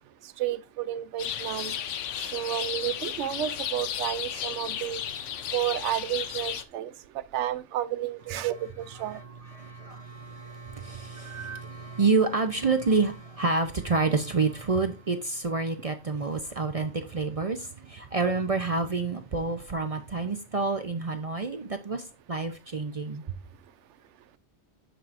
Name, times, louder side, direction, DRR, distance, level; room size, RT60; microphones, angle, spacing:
voice 1, 0.4-1.7 2.3-5.0 5.5-6.9 7.3-9.2 11.3-11.6, right 12 dB, 75° right, 0.9 m, -31 dB
sound 1, 1.2-6.6, left 9 dB, 85° left, 1.0 m, -34 dB
voice 2, 8.9-23.4, right 4 dB, 40° right, 0.6 m, -28 dB
13.0 x 4.6 x 2.5 m
omnidirectional pair, 1.2 m